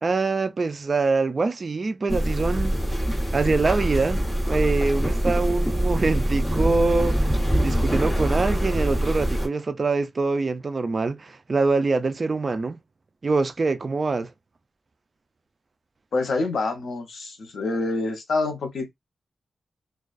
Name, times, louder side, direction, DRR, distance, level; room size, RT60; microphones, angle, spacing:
voice 1, 0.0-2.8 3.3-12.8 13.2-14.3, right 3 dB, 40° right, 0.4 m, -24 dB
sound 1, 2.1-9.5, equal, 10° left, 1.3 m, -24 dB
voice 2, 16.1-18.9, left 3 dB, 85° left, 0.8 m, -26 dB
2.3 x 2.3 x 2.4 m
wide cardioid pair, 140°, 0 cm